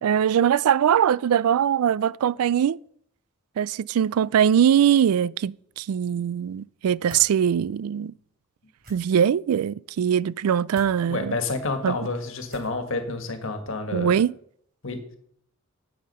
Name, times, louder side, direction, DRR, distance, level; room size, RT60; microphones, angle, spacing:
voice 1, 0.0-2.8 3.6-8.1 8.9-11.4 11.8-12.0 13.9-14.3, right 8 dB, 90° right, 0.3 m, -21 dB
sound 1, 7.1-7.3 8.8-9.0 10.7-10.9 12.5-12.8, right 1 dB, 45° right, 4.9 m, -45 dB
voice 2, 11.1-14.2 14.8-15.2, left 3 dB, 60° left, 1.7 m, -29 dB
9.9 x 8.7 x 5.5 m
head